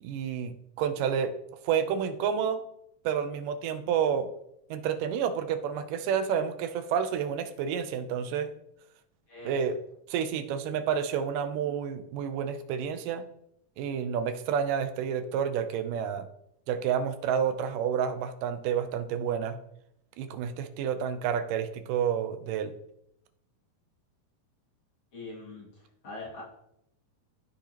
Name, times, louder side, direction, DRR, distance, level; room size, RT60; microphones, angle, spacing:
voice 1, 0.0-1.4 1.6-2.6 3.0-4.3 4.7-8.5 9.5-9.8 10.1-13.2 13.8-16.3 16.7-19.6 20.2-22.7, right 8 dB, 85° right, 10 dB, 2.3 m, -29 dB
voice 2, 25.1-25.7 26.0-26.4, left 3 dB, 45° left, -5 dB, 2.9 m, -41 dB
14.5 x 5.0 x 2.9 m, 0.77 s
omnidirectional pair, 3.7 m